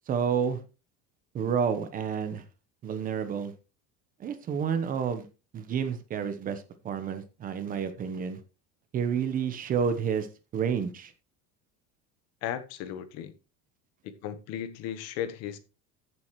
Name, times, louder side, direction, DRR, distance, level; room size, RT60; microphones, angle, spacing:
voice 1, 0.1-0.6 1.3-2.4 2.8-3.5 4.2-5.3 5.5-8.4 8.9-10.3 10.5-11.1, right 7 dB, 25° right, 1.0 m, -29 dB
voice 2, 12.4-13.3 14.0-15.6, left 10 dB, 55° left, 1.3 m, -35 dB
14.5 x 7.6 x 3.1 m
cardioid pair, 175°, 31 cm